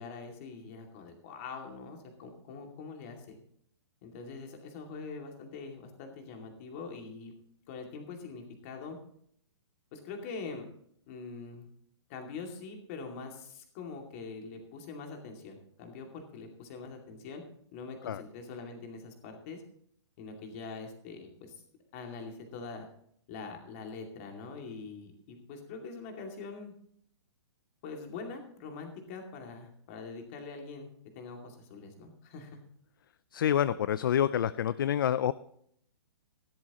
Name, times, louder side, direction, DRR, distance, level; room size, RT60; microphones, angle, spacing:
voice 1, 0.0-3.4 4.0-7.3 7.7-9.0 9.9-10.7 11.1-11.7 12.1-17.4 17.7-19.6 20.2-21.6 21.9-22.9 23.3-26.7 27.8-30.9 31.1-32.6, left 4 dB, 30° left, 2 dB, 2.4 m, -43 dB
voice 2, 33.3-35.3, left 10 dB, 50° left, 16 dB, 0.5 m, -27 dB
15.0 x 12.5 x 3.0 m, 0.66 s
hypercardioid pair, 170°, 15 cm